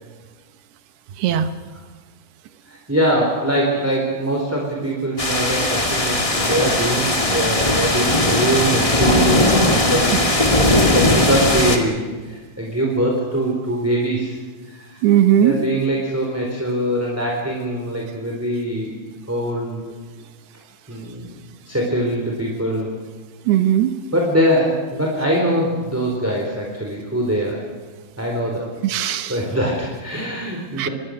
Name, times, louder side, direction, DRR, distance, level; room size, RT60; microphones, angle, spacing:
voice 1, 1.2-1.5 15.0-15.6 23.5-23.9 28.8-29.4 30.8-30.9, right 11 dB, 75° right, 10 dB, 3.0 m, -17 dB
voice 2, 2.7-14.4 14.7-15.0 15.4-18.9 19.3-19.9 20.9-21.4 21.6-22.9 24.1-27.6 28.2-28.7 29.0-30.9, right 1 dB, 5° right, -1 dB, 3.3 m, -23 dB
sound 1, 5.2-11.8, left 1 dB, 65° left, 0.3 m, -18 dB
25.5 x 22.0 x 6.6 m, 1.4 s
omnidirectional pair, 4.7 m